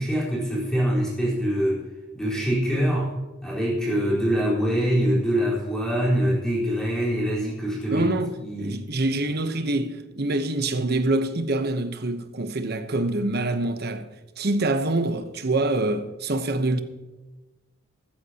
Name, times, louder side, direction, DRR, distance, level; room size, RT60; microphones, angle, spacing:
voice 1, 0.0-1.8 2.1-3.1 3.4-8.1 8.4-8.8, equal, 5° left, 4.1 m, -24 dB
voice 2, 7.9-14.1 14.4-16.8, right 2 dB, 55° right, 0.9 m, -25 dB
14.5 x 14.0 x 2.9 m
head